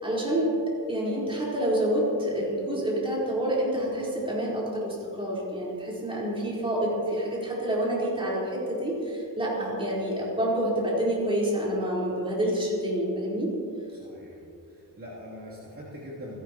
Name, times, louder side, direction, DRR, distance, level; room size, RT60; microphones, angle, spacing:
voice 1, 0.0-13.5, right 1 dB, 15° right, -6 dB, 4.3 m, -28 dB
voice 2, 13.9-14.4 14.7-16.4, equal, 40° right, -8 dB, 3.0 m, -42 dB
29.0 x 12.0 x 3.0 m, 2.6 s
wide cardioid pair, 155°, 34 cm